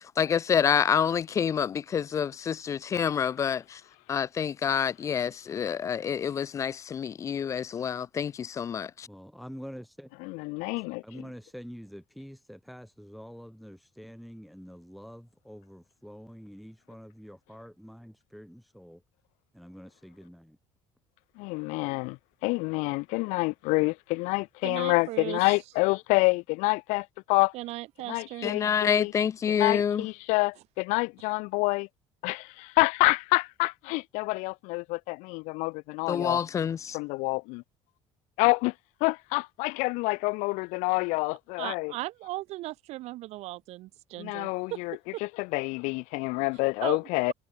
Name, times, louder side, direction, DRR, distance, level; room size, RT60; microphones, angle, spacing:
voice 1, 0.2-3.8 4.1-9.1 28.4-30.1 36.1-37.0, left 8 dB, 25° left, 0.4 m, -27 dB
voice 2, 9.1-10.1 11.0-19.0 19.5-20.6, equal, ahead, 1.7 m, -46 dB
voice 3, 10.2-11.0 21.4-22.2 22.4-27.5 28.1-29.1 29.6-31.9 32.2-36.4 36.9-37.6 38.4-38.7 39.0-41.9 44.2-45.0 45.4-47.3, left 27 dB, 90° left, 0.5 m, -27 dB
voice 4, 24.6-25.6 27.5-28.5 41.6-44.8 45.1-45.2 46.8-47.0 47.3-47.4, right 17 dB, 65° right, 1.8 m, -37 dB
cardioid pair, 160°, 12 cm